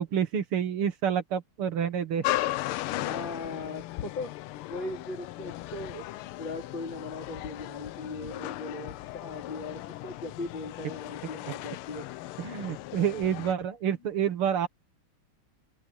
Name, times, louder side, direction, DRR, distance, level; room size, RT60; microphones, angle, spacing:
voice 1, 0.0-2.3 12.4-14.7, right 8 dB, 80° right, 2.6 m, -28 dB
sound 1, 2.2-13.5, left 16 dB, 90° left, 1.5 m, -36 dB
voice 2, 3.0-12.1 12.5-12.6, left 3 dB, 60° left, 5.3 m, -39 dB
open air
omnidirectional pair, 2.4 m